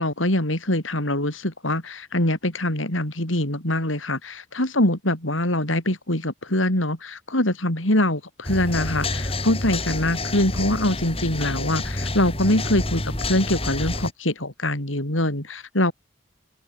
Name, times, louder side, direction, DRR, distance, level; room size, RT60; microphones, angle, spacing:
voice 1, 0.0-15.9, left 1 dB, 90° left, 6.2 m, -24 dB
sound 1, 8.4-14.1, left 2 dB, 30° left, 6.0 m, -28 dB
open air
head